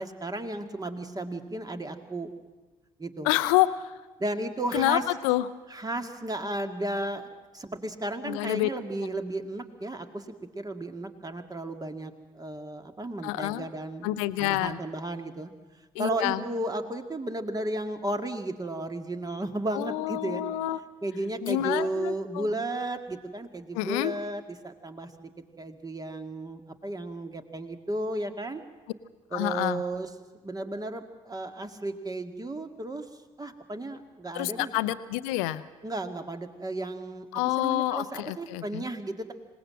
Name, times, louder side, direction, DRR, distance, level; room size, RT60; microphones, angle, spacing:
voice 1, 0.0-2.3 3.0-3.3 4.2-5.0 5.7-7.3 7.5-10.2 10.5-15.5 16.0-20.4 21.0-25.3 25.6-28.6 29.3-30.1 30.4-33.1 33.4-34.7 35.8-39.3, right 2 dB, 20° right, 7 dB, 2.1 m, -34 dB
voice 2, 3.2-3.9 4.7-5.5 8.2-8.7 13.2-13.7 14.0-14.8 15.9-16.4 19.7-20.8 21.4-22.5 23.7-24.1 29.3-29.8 34.3-35.6 37.3-38.8, left 16 dB, 70° left, 15 dB, 0.7 m, -27 dB
26.5 x 18.0 x 7.6 m, 1.2 s
figure-of-eight pair, 45°, 18 cm